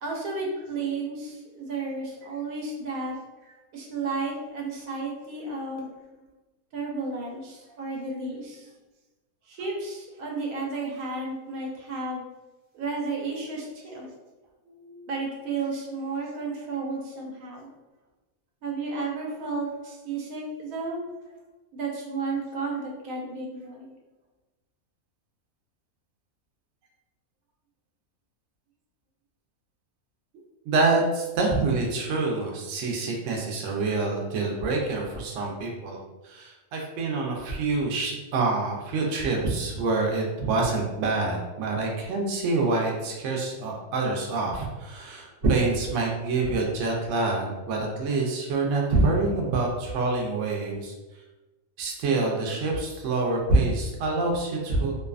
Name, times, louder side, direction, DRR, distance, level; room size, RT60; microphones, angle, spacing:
voice 1, 0.0-3.2 3.7-5.9 6.7-8.7 9.5-12.2 12.7-14.1 15.1-17.7 18.6-21.0 21.7-23.9, right 3 dB, 85° right, -2 dB, 1.1 m, -32 dB
voice 2, 14.7-15.1 30.7-50.9 51.8-54.9, right 3 dB, 65° right, 0 dB, 0.8 m, -26 dB
2.6 x 2.2 x 2.3 m, 1.1 s
omnidirectional pair, 1.5 m